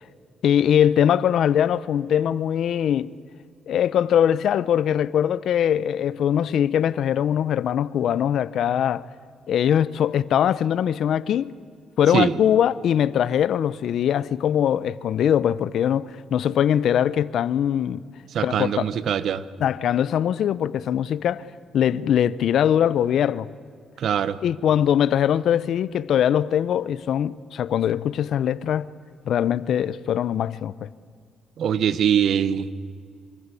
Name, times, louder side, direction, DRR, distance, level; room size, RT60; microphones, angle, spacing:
voice 1, 0.4-3.1 3.7-9.1 9.5-11.5 12.0-18.0 18.4-18.8 19.6-21.4 21.7-23.5 24.4-28.9 29.3-30.9, left 9 dB, 70° left, 0.8 m, -21 dB
voice 2, 18.3-19.4 24.0-24.4 31.6-32.7, right 8 dB, 65° right, 1.2 m, -22 dB
26.0 x 25.0 x 8.4 m
cardioid pair, 90°, 0 cm